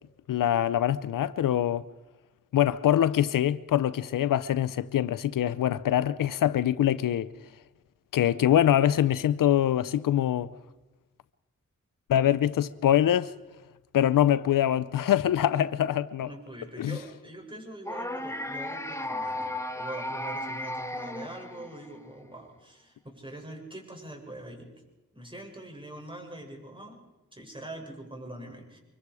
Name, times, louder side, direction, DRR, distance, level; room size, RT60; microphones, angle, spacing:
voice 1, 0.3-1.8 2.5-7.3 8.1-10.5 12.1-13.3 13.9-16.3 16.8-17.0, left 11 dB, 90° left, 0.6 m, -24 dB
voice 2, 16.2-24.7 25.1-27.0 27.3-28.8, right 1 dB, 15° right, 7.1 m, -43 dB
sound 1, 17.8-22.0, left 1 dB, 10° left, 1.7 m, -35 dB
25.0 x 23.0 x 4.8 m
cardioid pair, 50°, 32 cm